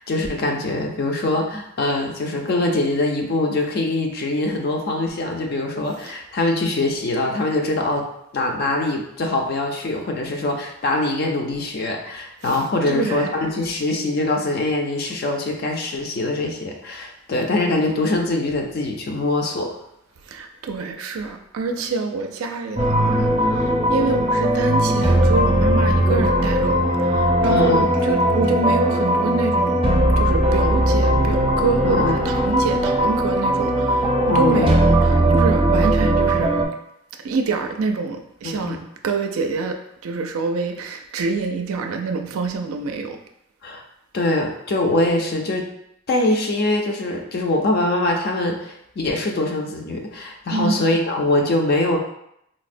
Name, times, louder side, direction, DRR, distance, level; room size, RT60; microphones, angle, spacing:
voice 1, 0.0-8.1 8.3-19.8 26.1-26.3 27.5-27.9 31.8-32.2 34.3-34.8 38.4-38.8 43.6-43.8 44.1-45.7 46.1-52.0, left 2 dB, 50° left, 2 dB, 0.4 m, -23 dB
voice 2, 12.9-13.3 20.3-29.8 30.2-36.6 37.2-38.8 39.0-43.2 50.5-50.8, right 4 dB, 90° right, 5 dB, 0.4 m, -26 dB
sound 1, 22.8-36.6, right 1 dB, 25° right, 0.5 m, -19 dB
4.1 x 2.0 x 2.5 m, 0.76 s
head